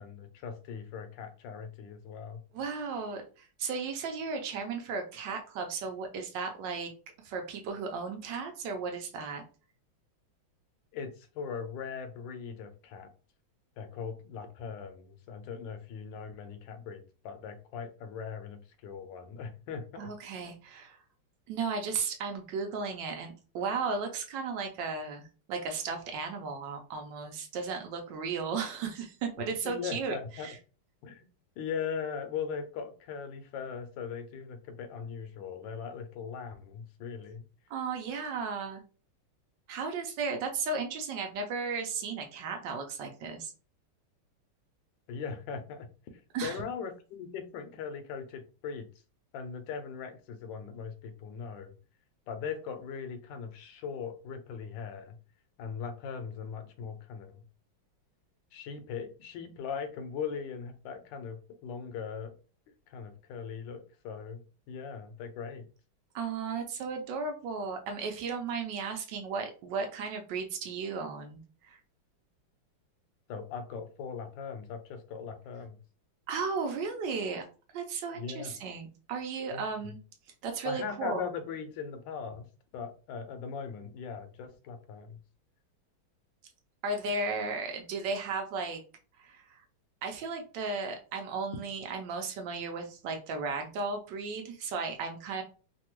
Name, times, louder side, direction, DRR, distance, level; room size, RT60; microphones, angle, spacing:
voice 1, 0.0-2.4 10.9-13.1 13.8-20.1 29.6-30.5 31.0-31.3 31.6-37.4 45.1-48.9 49.3-51.7 52.3-55.2 55.6-57.4 58.5-62.3 62.9-65.7 73.3-75.8 78.1-78.6 79.5-79.9 80.6-82.5 82.7-85.2, left 6 dB, 75° left, 8 dB, 1.2 m, -40 dB
voice 2, 2.5-6.9 7.2-9.4 20.0-21.0 21.5-30.6 37.7-38.8 39.7-43.5 46.3-46.6 66.1-71.8 76.3-77.5 77.7-80.0 80.4-81.3 86.8-88.8 89.2-89.4 90.0-95.4, right 4 dB, 75° right, 4 dB, 1.1 m, -35 dB
3.3 x 2.2 x 2.9 m, 0.37 s
omnidirectional pair, 2.2 m